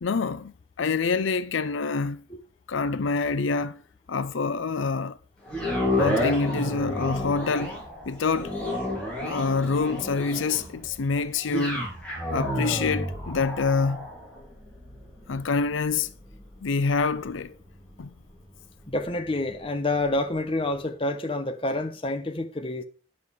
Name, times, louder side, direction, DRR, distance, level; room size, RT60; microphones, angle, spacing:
voice 1, 0.0-2.2 2.7-3.8 4.1-5.2 6.0-7.8 8.1-8.5 9.2-11.8 12.3-14.1 15.3-16.1 16.6-17.5 18.0-18.1, left 4 dB, 85° left, 0.6 m, -26 dB
sound 1, 5.5-19.7 20.2-20.3, left 1 dB, 5° left, 3.8 m, -32 dB
voice 2, 18.9-22.8, left 2 dB, 30° left, 1.0 m, -28 dB
10.5 x 7.2 x 4.8 m
head